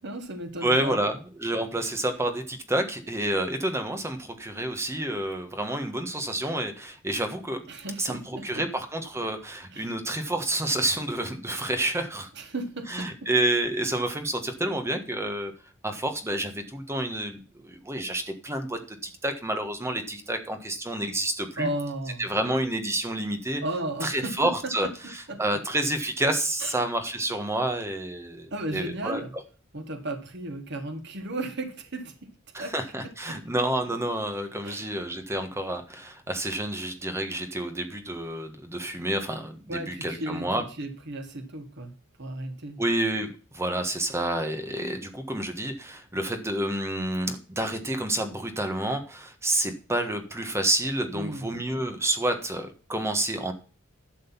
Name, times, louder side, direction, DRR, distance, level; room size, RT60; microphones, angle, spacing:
voice 1, 0.0-1.0 7.7-8.7 9.7-9.9 12.3-13.3 21.6-22.3 23.6-25.6 26.6-26.8 28.5-29.3 29.7-32.1 32.6-32.7 33.0-33.4 34.6-34.9 39.7-40.5 40.8-41.9 42.2-42.8 51.1-51.5, right 1 dB, 60° right, 6 dB, 1.5 m, -35 dB
voice 2, 0.6-7.6 8.0-12.3 12.9-15.5 15.8-21.7 22.2-23.6 24.0-24.9 25.4-29.2 32.5-40.6 42.8-53.5, right 1 dB, 15° right, 6 dB, 1.4 m, -29 dB
12.0 x 6.6 x 5.6 m, 0.36 s
head